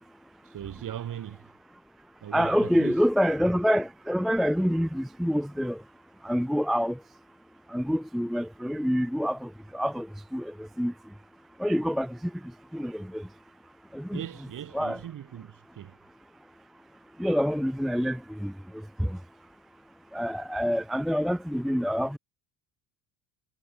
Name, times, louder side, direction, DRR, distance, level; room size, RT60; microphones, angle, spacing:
voice 1, 0.4-1.5 2.2-3.0 14.1-16.0, right 11 dB, 45° right, 2.5 m, -39 dB
voice 2, 2.3-5.8 6.2-7.0 7.7-10.9 11.6-12.3 12.7-13.3 13.9-14.2 14.7-15.0 17.2-19.2 20.1-22.2, equal, ahead, 0.4 m, -27 dB
supercardioid pair, 90°, 43 cm